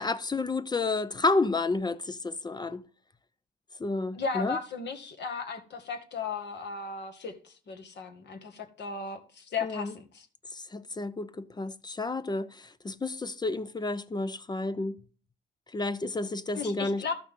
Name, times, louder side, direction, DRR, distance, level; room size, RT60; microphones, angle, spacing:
voice 1, 0.0-2.8 3.8-4.6 9.6-9.9 10.5-15.0 15.7-17.1, left 3 dB, 20° left, 0.5 m, -31 dB
voice 2, 4.1-10.3 16.5-17.1, left 5 dB, 60° left, 1.8 m, -36 dB
13.0 x 6.0 x 3.7 m
cardioid pair, 90°, 20 cm